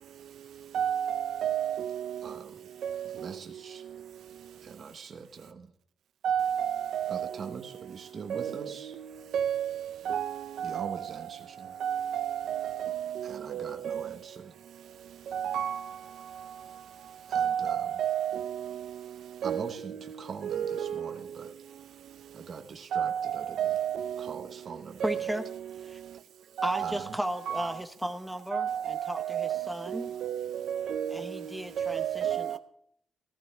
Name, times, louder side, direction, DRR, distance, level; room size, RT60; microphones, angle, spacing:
voice 1, 0.7-2.3 2.8-3.1 6.2-7.4 8.3-8.7 9.3-11.1 11.8-14.1 15.3-15.8 17.3-18.8 19.4-19.7 20.4-21.1 22.9-24.4 25.0-25.3 26.6-27.0 27.5-27.7 28.5-31.5 31.8-32.6, right 9 dB, 65° right, 0.5 m, -31 dB
voice 2, 2.2-2.7 3.0-3.8 4.6-5.7 7.1-9.0 10.6-11.7 13.2-14.5 17.3-17.9 19.4-21.9 22.3-23.6 24.2-25.3 26.8-27.2, right 5 dB, 40° right, 1.0 m, -43 dB
voice 3, 25.0-25.5 25.8-26.0 26.6-30.1 31.1-32.6, equal, ahead, 0.9 m, -35 dB
14.5 x 14.5 x 3.5 m
cardioid pair, 160°, 0 cm